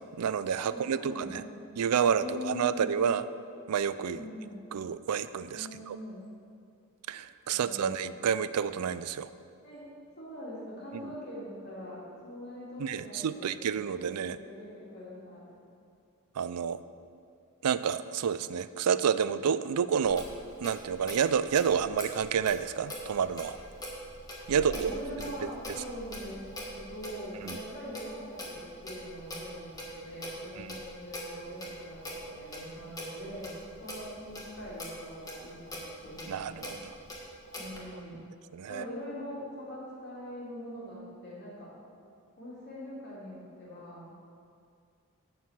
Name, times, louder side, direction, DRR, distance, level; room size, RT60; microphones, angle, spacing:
voice 1, 0.0-1.4 1.8-3.2 3.7-4.2 4.7-6.0 7.1-9.3 10.9-11.0 12.8-14.4 16.4-16.8 17.6-20.3 20.6-23.6 24.5-24.9 27.4-27.6 30.6-30.8 36.3-36.8 38.5-38.8, right 7 dB, 90° right, 14 dB, 0.4 m, -29 dB
voice 2, 0.7-1.5 2.2-2.9 4.1-4.6 5.5-6.3 7.5-8.1 9.6-9.8 10.2-15.5 24.5-26.4 26.7-36.8 37.6-38.2 38.7-41.7 42.4-44.1, left 1 dB, 50° left, -7 dB, 2.6 m, -43 dB
Clock, 20.0-37.8, equal, 15° left, 1.4 m, -43 dB
11.0 x 4.7 x 7.3 m, 2.3 s
head